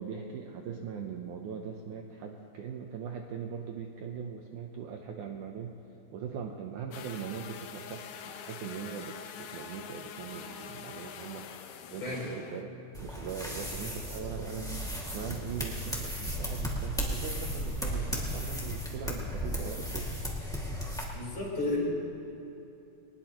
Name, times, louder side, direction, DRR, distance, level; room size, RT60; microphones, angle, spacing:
voice 1, 0.0-5.8 6.1-11.5 11.9-20.1, right 7 dB, 85° right, 2 dB, 1.7 m, -40 dB
sound 1, 6.9-12.6, left 8 dB, 75° left, 2.0 m, -45 dB
sound 2, 12.9-21.0, equal, 5° left, 0.3 m, -35 dB
voice 2, 21.1-21.8, left 2 dB, 30° left, -5 dB, 4.5 m, -32 dB
22.5 x 20.0 x 3.1 m, 2.9 s
omnidirectional pair, 4.7 m